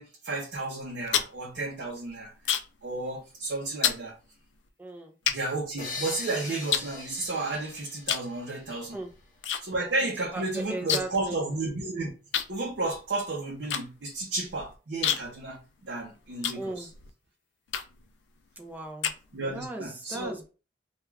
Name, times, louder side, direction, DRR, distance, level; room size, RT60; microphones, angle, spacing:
voice 1, 0.0-2.3 2.8-4.1 5.3-9.0 9.6-12.1 12.5-16.9 19.3-20.4, right 2 dB, 70° right, 0.6 m, -32 dB
sound 1, 0.8-2.9 3.1-3.4 3.8-4.1 4.7-4.8 5.3-6.2 6.7-7.6 8.0-8.3 8.6-9.6 9.9-10.0 10.2-11.3 11.5-11.6 12.3-17.1 17.7-18.1 18.6-19.7, left 9 dB, 85° left, 0.4 m, -30 dB
voice 2, 4.8-5.1 8.9-9.1 10.3-11.4 16.5-16.9 18.6-19.1 19.5-20.5, right 2 dB, 10° right, 0.5 m, -37 dB
sound 2, 5.8-9.3, left 3 dB, 50° left, 0.7 m, -41 dB
2.3 x 2.3 x 3.1 m
head